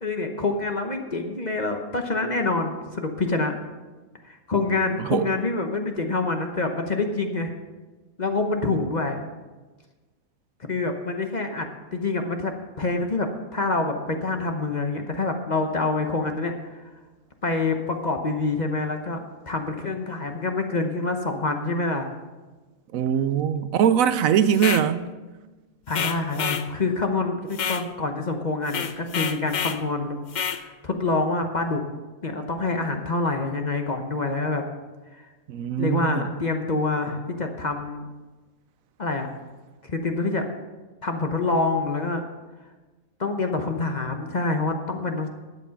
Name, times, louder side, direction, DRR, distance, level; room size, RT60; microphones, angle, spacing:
voice 1, 0.0-3.5 4.2-7.5 8.2-9.2 10.7-16.8 17.4-22.1 25.9-31.8 32.2-34.6 35.1-35.3 35.8-38.0 39.0-39.3 39.8-40.5 41.0-42.2 43.2-45.3, left 3 dB, 35° left, 4 dB, 0.9 m, -26 dB
voice 2, 5.0-5.3 22.9-25.0 35.5-36.3, right 9 dB, 75° right, 13 dB, 1.0 m, -22 dB
sound 1, 24.5-24.9 25.9-26.7 27.5-27.9 28.7-29.8 30.3-30.6, left 7 dB, 60° left, 0.4 m, -28 dB
12.5 x 8.2 x 5.7 m, 1.2 s
omnidirectional pair, 1.5 m